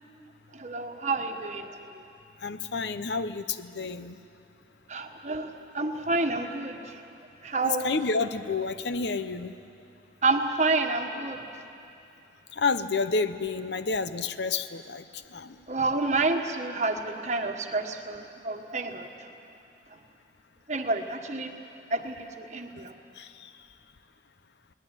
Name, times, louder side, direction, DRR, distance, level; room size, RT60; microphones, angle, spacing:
voice 1, 0.5-1.7 4.9-7.0 7.4-7.9 10.2-11.4 15.7-19.1 20.7-21.5 21.9-22.9, right 3 dB, 40° right, 5 dB, 1.3 m, -29 dB
voice 2, 2.4-4.2 7.6-9.5 12.5-15.0 15.3-15.5 23.2-23.3, left 4 dB, 70° left, 12 dB, 0.8 m, -29 dB
21.0 x 18.5 x 9.0 m, 2.6 s
head